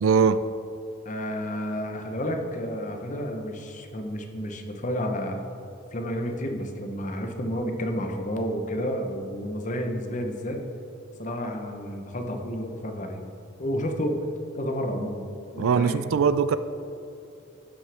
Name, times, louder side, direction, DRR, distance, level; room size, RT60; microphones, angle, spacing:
voice 1, 0.0-0.4 15.6-16.6, right 6 dB, 70° right, 13 dB, 0.4 m, -21 dB
voice 2, 1.0-5.4 5.9-10.6 11.2-13.2 13.6-14.2 14.6-15.3 15.5-16.0, equal, 35° left, 4 dB, 0.8 m, -30 dB
12.0 x 7.6 x 3.4 m, 2.7 s
head